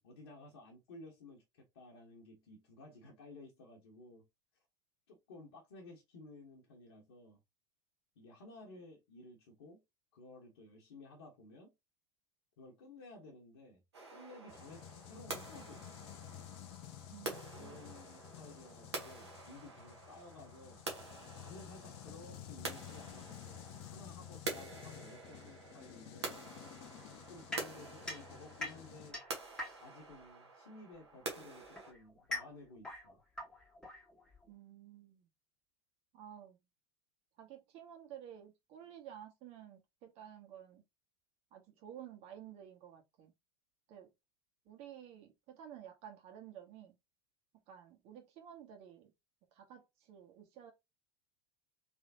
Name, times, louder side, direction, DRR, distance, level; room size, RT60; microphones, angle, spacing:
voice 1, 0.0-4.3 5.1-7.4 8.1-9.8 10.1-11.7 12.6-13.8 14.1-15.8 17.5-21.1 21.4-26.4 27.3-29.2 29.8-33.2, left 2 dB, 70° left, 1.3 m, -55 dB
sound 1, 13.9-31.9, right 3 dB, 80° right, 1.4 m, -47 dB
sound 2, 14.5-29.1, left 12 dB, 45° left, 0.6 m, -52 dB
voice 2, 17.1-18.0 34.5-35.3 36.1-36.6 37.4-40.8 41.5-43.3 43.9-44.1 44.6-47.0 47.7-49.1 49.5-50.7, right 10 dB, 50° right, 1.6 m, -53 dB
sound 3, 27.5-30.1 31.1-34.5, left 1 dB, 5° left, 1.5 m, -44 dB
3.6 x 3.5 x 2.8 m
figure-of-eight pair, 80°, 14 cm